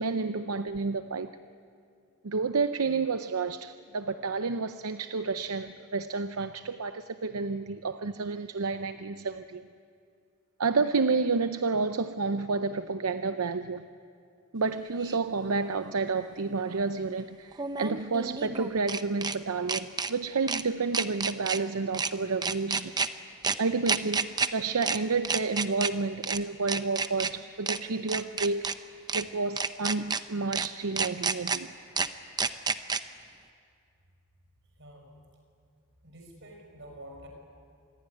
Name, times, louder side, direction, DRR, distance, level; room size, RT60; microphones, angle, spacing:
voice 1, 0.0-1.3 2.2-9.6 10.6-13.9 14.5-22.9 23.6-31.7, right 4 dB, 80° right, 10 dB, 0.7 m, -30 dB
sound 1, 15.1-15.2 17.5-19.4 19.7-20.1 20.5-20.6 20.9-21.6 21.9-22.1 22.4-23.1 23.4-23.6 23.9-24.5 24.8-25.0 25.2-25.9 26.2-26.4 26.7-27.3 27.7-27.8 28.1-28.7 29.1-29.2 29.6-30.2 30.5-30.7 31.0-31.6 32.0-32.1 32.4-33.0, right 5 dB, 20° right, 0.7 m, -29 dB
voice 2, 34.8-35.2 36.0-37.3, right 1 dB, 55° right, 2 dB, 6.4 m, -48 dB
27.0 x 21.0 x 9.8 m, 2.4 s
head